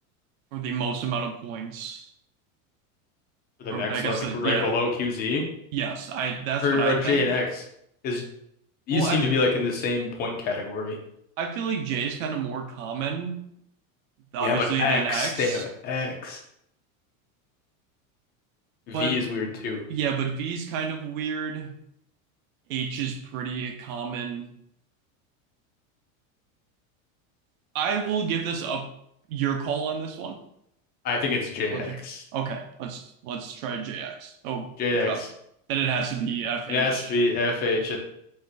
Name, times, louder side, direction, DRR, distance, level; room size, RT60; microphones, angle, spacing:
voice 1, 0.5-2.1 3.7-4.8 5.3-5.5 5.7-7.3 8.9-9.3 11.4-13.4 14.3-15.6 18.9-19.2 19.9-21.7 22.7-24.5 27.7-28.9 29.3-30.4 31.7-32.0 32.3-35.2 35.7-37.2, right 7 dB, 75° right, 6 dB, 0.8 m, -30 dB
voice 2, 3.6-5.4 6.6-7.6 8.0-8.2 8.9-11.0 14.4-16.4 18.9-19.8 31.0-32.2 34.8-35.3 36.7-38.0, left 3 dB, 25° left, 1 dB, 0.5 m, -26 dB
4.3 x 2.5 x 3.8 m, 0.74 s
supercardioid pair, 165°, 41 cm